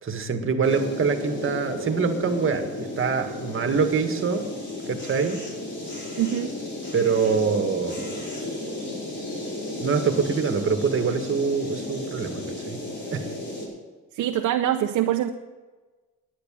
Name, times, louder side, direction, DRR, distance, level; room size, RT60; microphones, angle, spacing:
voice 1, 0.0-4.5 4.9-5.4 6.9-8.2 9.8-12.8 13.1-13.2, right 5 dB, 45° right, 6 dB, 1.7 m, -25 dB
sound 1, 0.6-13.7, left 1 dB, 40° left, 4.7 m, -34 dB
voice 2, 6.2-6.5 14.1-15.3, right 12 dB, 75° right, 4 dB, 0.7 m, -24 dB
10.5 x 9.8 x 7.5 m, 1.3 s
cardioid pair, 90°, 30 cm